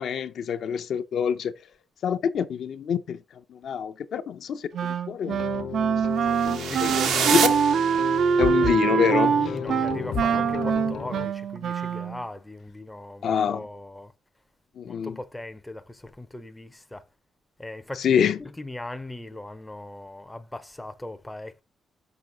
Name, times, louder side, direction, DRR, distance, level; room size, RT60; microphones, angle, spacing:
voice 1, 0.0-1.5 2.0-3.2 3.5-5.4 6.4-6.9 7.3-7.5 8.4-9.3 13.2-13.6 14.8-15.1 18.0-18.4, left 7 dB, 60° left, 0.6 m, -26 dB
Wind instrument woodwind instrument, 4.7-12.2, right 7 dB, 60° right, 0.4 m, -24 dB
sound 1, 5.3-11.3, left 6 dB, 75° left, 1.1 m, -33 dB
sound 2, 6.3-8.5, right 7 dB, 90° right, 1.2 m, -27 dB
voice 2, 6.7-7.4 9.1-14.1 14.9-17.1 17.6-18.1 18.4-21.6, left 2 dB, 5° left, 0.5 m, -38 dB
6.1 x 5.4 x 3.8 m
wide cardioid pair, 155°, 0 cm